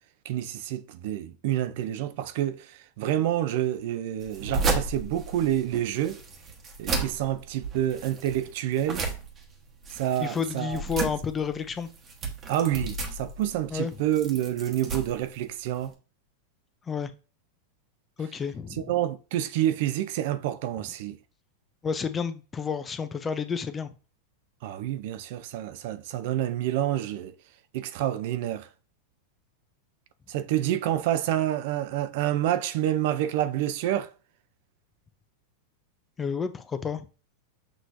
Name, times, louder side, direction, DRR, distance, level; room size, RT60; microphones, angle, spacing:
voice 1, 0.3-6.2 6.8-9.1 9.9-10.8 12.5-15.9 18.8-21.2 24.6-27.3 27.7-28.7 30.3-34.1, right 12 dB, 65° right, 0.5 m, -28 dB
sound 1, 4.2-15.9, right 4 dB, 30° right, 1.1 m, -34 dB
voice 2, 10.2-11.9 13.7-13.9 16.9-17.1 18.2-18.9 21.8-23.9 36.2-37.1, left 6 dB, 20° left, 0.5 m, -30 dB
6.2 x 2.9 x 2.6 m
hypercardioid pair, 120°, 0 cm